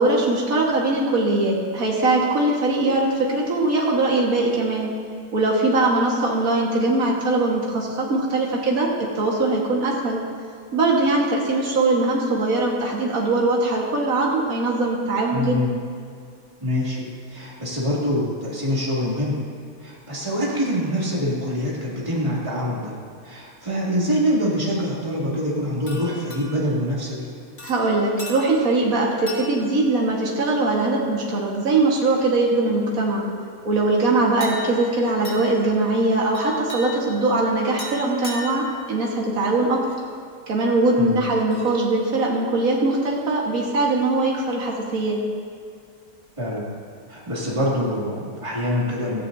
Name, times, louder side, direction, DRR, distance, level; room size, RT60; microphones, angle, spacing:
voice 1, 0.0-4.9 5.3-10.2 10.7-15.6 27.6-33.3 33.6-39.8 40.5-45.2, right 2 dB, 65° right, -3 dB, 2.1 m, -21 dB
voice 2, 15.3-15.7 16.6-17.0 17.3-19.4 19.8-22.9 23.2-27.3 41.0-41.2 46.4-46.7 47.1-49.2, equal, 20° right, -6 dB, 2.7 m, -25 dB
sound 1, 25.9-26.8 27.6-28.8 29.3-29.8 30.4-30.6 34.4-34.9 35.2-35.7 36.3-37.2 37.8-38.7 39.9-40.0 41.5-41.8, left 1 dB, 65° left, 2.6 m, -37 dB
16.5 x 14.0 x 2.8 m, 2.2 s
omnidirectional pair, 1.6 m